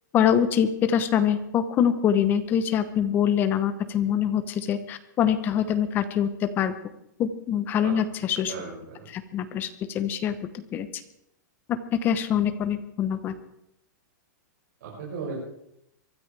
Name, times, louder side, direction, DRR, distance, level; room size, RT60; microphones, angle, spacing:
voice 1, 0.1-6.7 7.2-8.5 9.1-10.3 10.7-10.9 11.7-13.3, left 9 dB, 20° left, 10 dB, 0.9 m, -24 dB
voice 2, 8.4-9.1 14.8-15.4, right 4 dB, 65° right, -5 dB, 6.2 m, -36 dB
24.0 x 13.0 x 3.4 m, 0.81 s
supercardioid pair, 165°, 10 cm